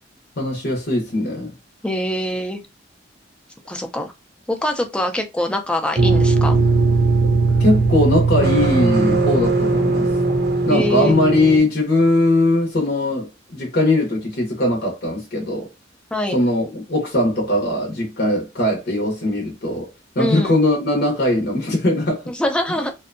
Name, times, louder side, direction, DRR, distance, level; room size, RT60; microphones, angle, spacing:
voice 1, 0.4-1.5 7.6-10.1 10.7-15.7 16.3-19.9 20.2-22.2, left 1 dB, 55° left, 0.8 m, -20 dB
voice 2, 1.8-2.6 3.7-4.1 4.5-6.6 10.7-11.2 16.1-16.4 20.2-20.5 22.3-22.9, left 1 dB, 5° left, 0.4 m, -23 dB
sound 1, 6.0-11.6, right 3 dB, 55° right, 0.6 m, -18 dB
2.6 x 2.2 x 2.5 m
head